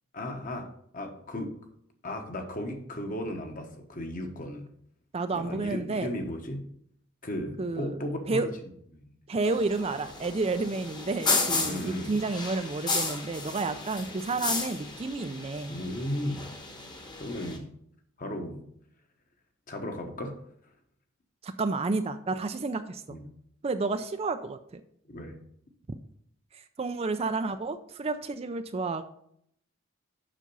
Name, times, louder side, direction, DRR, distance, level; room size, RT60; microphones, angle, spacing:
voice 1, 0.1-1.5 2.0-4.7 5.3-6.7 7.2-8.5 8.9-9.0 11.5-12.2 15.7-16.5 17.2-17.7 18.2-18.6 19.7-20.4 23.1-23.3 25.0-25.4, left 1 dB, 40° left, 5 dB, 1.1 m, -35 dB
voice 2, 5.1-6.1 7.6-8.0 8.3-8.5 9.3-15.7 21.4-23.0 23.6-24.8 26.5-29.1, right 3 dB, 30° right, 9 dB, 0.4 m, -30 dB
sound 1, 9.4-17.6, left 3 dB, 20° left, 1.1 m, -33 dB
7.3 x 5.8 x 5.3 m, 0.69 s
head